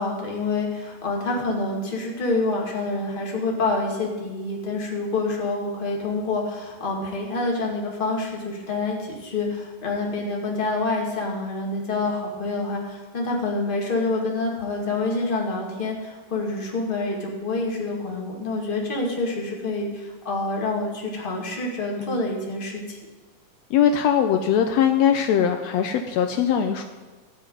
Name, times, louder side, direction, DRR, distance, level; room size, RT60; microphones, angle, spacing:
voice 1, 0.0-23.0, left 3 dB, 20° left, -1 dB, 1.8 m, -27 dB
voice 2, 23.7-26.8, left 8 dB, 90° left, 6 dB, 1.5 m, -21 dB
15.0 x 5.1 x 9.4 m, 1.3 s
omnidirectional pair, 3.8 m